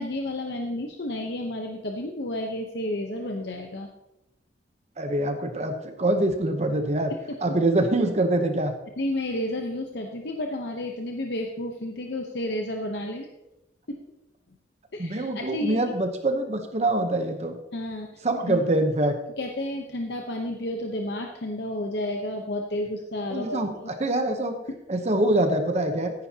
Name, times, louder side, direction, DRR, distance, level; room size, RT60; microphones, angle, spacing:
voice 1, 0.0-3.9 7.1-7.2 9.0-13.3 13.9-14.0 14.9-16.0 17.7-18.1 18.5-18.6 19.4-23.9 24.7-24.8, left 1 dB, 60° left, 2 dB, 0.9 m, -31 dB
voice 2, 5.0-7.1 7.4-8.7 15.0-17.6 18.2-19.1 23.3-23.7 24.0-24.6 24.9-26.1, right 1 dB, 35° right, 6 dB, 0.9 m, -24 dB
14.0 x 10.0 x 2.9 m, 0.91 s
head